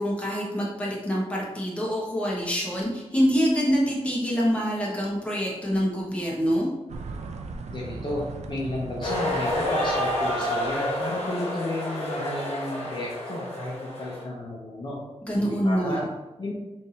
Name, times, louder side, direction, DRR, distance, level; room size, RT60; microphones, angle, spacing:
voice 1, 0.0-6.7 15.2-16.0, equal, 10° left, -4 dB, 1.2 m, -25 dB
sound 1, 6.9-11.2, right 4 dB, 85° right, 0.4 m, -39 dB
voice 2, 7.7-15.0 15.4-16.0 16.4-16.5, left 1 dB, 45° left, -4 dB, 0.8 m, -32 dB
sound 2, 9.0-14.2, left 1 dB, 65° left, 1.2 m, -29 dB
3.4 x 2.7 x 4.2 m, 1.0 s
wide cardioid pair, 85°, 11 cm